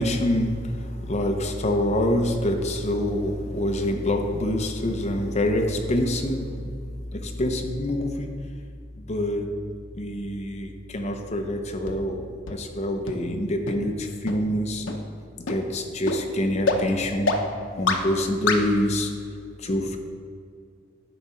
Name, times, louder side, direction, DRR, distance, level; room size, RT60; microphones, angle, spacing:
voice 1, 0.0-6.7 7.1-8.3 9.0-9.5 9.9-14.8 15.5-17.4 17.8-19.1 19.6-20.0, left 1 dB, 35° left, 4 dB, 0.7 m, -26 dB
sound 1, 11.9-12.0 12.5-12.6 13.1-13.2 13.7-13.8 14.3-14.4 14.9-15.0 15.5-15.6 16.1-16.2 16.7-16.8 17.3-17.4 17.9-18.0 18.5-18.6, left 4 dB, 80° left, 0.7 m, -24 dB
10.5 x 5.0 x 4.3 m, 2.3 s
head